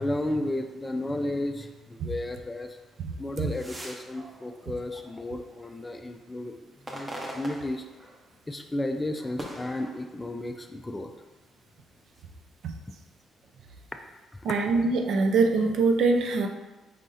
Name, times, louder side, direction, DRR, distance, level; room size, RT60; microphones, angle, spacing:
voice 1, 0.0-2.8 3.2-6.6 6.9-7.8 8.5-11.1 14.3-14.4, left 1 dB, 20° left, 5 dB, 0.4 m, -33 dB
sound 1, 3.3-5.6 6.1-8.4 8.8-10.6 11.3-12.2, right 1 dB, 20° right, 0.9 m, -43 dB
voice 2, 14.4-16.5, right 3 dB, 70° right, 4 dB, 0.5 m, -23 dB
5.0 x 2.7 x 3.8 m, 1.1 s
cardioid pair, 90°, 0 cm